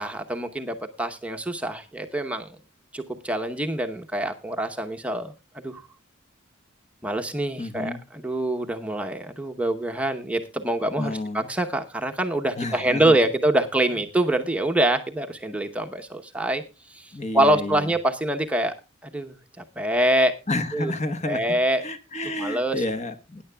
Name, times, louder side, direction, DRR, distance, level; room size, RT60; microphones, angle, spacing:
voice 1, 0.0-2.5 2.9-5.8 7.0-16.6 16.9-18.7 19.0-20.4 20.7-20.9 21.3-21.8 22.4-22.8, right 1 dB, 5° right, 0.8 m, -25 dB
voice 2, 7.6-8.0 11.0-11.5 12.6-13.2 17.1-17.9 20.5-21.4 21.8-23.4, left 2 dB, 35° left, 1.2 m, -30 dB
21.0 x 9.9 x 2.2 m
head